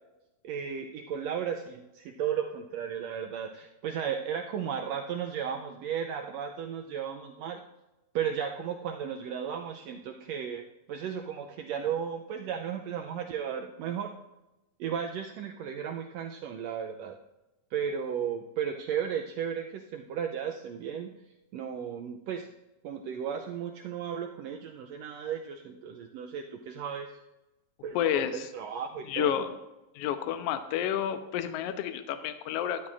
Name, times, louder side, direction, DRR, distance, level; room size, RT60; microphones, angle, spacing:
voice 1, 0.4-7.6 8.1-14.1 14.8-17.2 17.7-21.1 21.5-22.5 22.8-27.2 27.8-29.5, right 8 dB, 85° right, 4 dB, 1.5 m, -35 dB
voice 2, 27.9-28.5 29.1-29.5 29.9-32.8, left 10 dB, 75° left, 9 dB, 1.4 m, -30 dB
12.5 x 12.0 x 2.5 m, 0.98 s
omnidirectional pair, 3.6 m